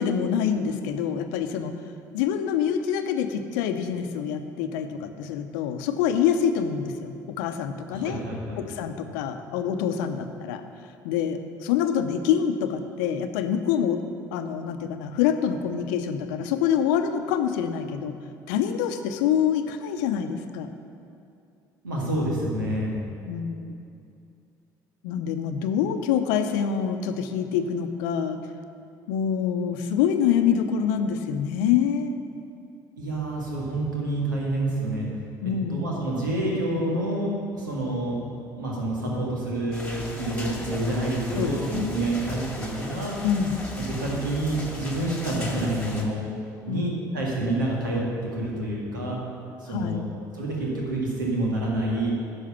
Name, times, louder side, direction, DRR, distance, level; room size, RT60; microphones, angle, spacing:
voice 1, 0.0-1.7 2.1-8.2 8.6-10.6 11.0-14.0 14.3-18.2 18.5-20.7 23.3-23.8 25.0-28.4 29.1-32.2 35.4-35.9 41.3-41.9 43.2-43.6 46.7-46.8 49.7-50.0, left 8 dB, 75° left, 8 dB, 0.7 m, -26 dB
voice 2, 7.9-8.7 21.8-23.0 33.0-35.1 35.4-38.3 38.5-43.2 43.8-46.2 46.7-49.2 49.6-50.1 50.3-52.1, right 1 dB, 90° right, -3 dB, 1.8 m, -28 dB
sound 1, 39.7-46.0, left 2 dB, 10° left, 2.0 m, -38 dB
10.5 x 6.4 x 5.8 m, 2.6 s
hypercardioid pair, 60°, 10 cm